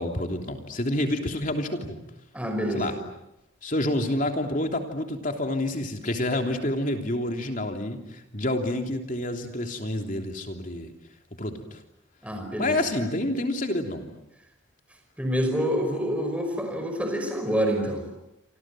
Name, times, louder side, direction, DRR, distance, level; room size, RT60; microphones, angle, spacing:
voice 1, 0.0-2.0 2.7-3.0 3.6-10.9 11.4-11.8 12.6-14.1, left 1 dB, 40° left, 4 dB, 3.2 m, -28 dB
voice 2, 2.3-2.9 12.2-12.8 15.2-18.0, equal, 5° right, 4 dB, 5.5 m, -27 dB
28.0 x 26.5 x 7.8 m, 0.86 s
head